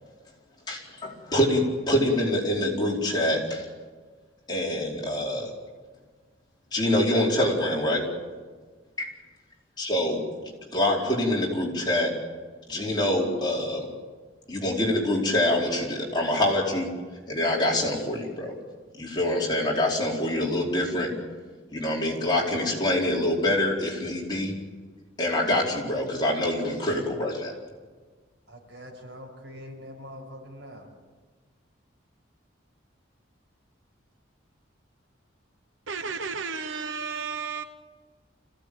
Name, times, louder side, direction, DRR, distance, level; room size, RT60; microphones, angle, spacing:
voice 1, 0.7-3.7 4.5-5.5 6.7-8.1 9.0-9.1 9.8-12.1 12.7-13.9 14.5-16.9 17.3-18.5 19.0-21.1 21.7-24.5 25.2-27.5, left 1 dB, 20° left, -3 dB, 4.6 m, -25 dB
voice 2, 28.5-30.9, equal, 60° right, 1 dB, 6.4 m, -43 dB
voice 3, 35.9-37.6, right 5 dB, 80° right, 9 dB, 0.9 m, -32 dB
26.0 x 16.5 x 8.7 m, 1.4 s
head